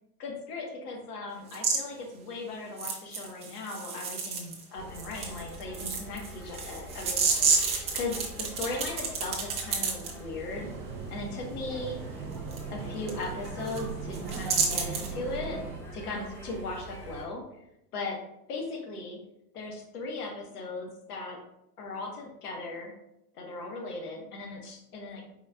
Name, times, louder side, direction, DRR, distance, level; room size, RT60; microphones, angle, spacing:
voice 1, 0.2-10.7 11.1-12.0 12.7-15.6 15.9-17.4 17.9-18.2 18.5-19.2 19.5-21.4 21.8-22.9 23.3-25.2, left 3 dB, 65° left, 1 dB, 1.4 m, -38 dB
sound 1, 1.5-1.8 2.8-4.6 4.9-10.1 12.5-12.6 13.1-13.2 13.4-13.8 14.1-15.1, right 5 dB, 15° right, 0.4 m, -30 dB
sound 2, 4.8-17.2, right 1 dB, 5° left, 0.9 m, -44 dB
sound 3, 10.5-15.8, right 6 dB, 80° right, 0.7 m, -39 dB
4.4 x 4.3 x 2.4 m, 0.84 s
hypercardioid pair, 105°, 49 cm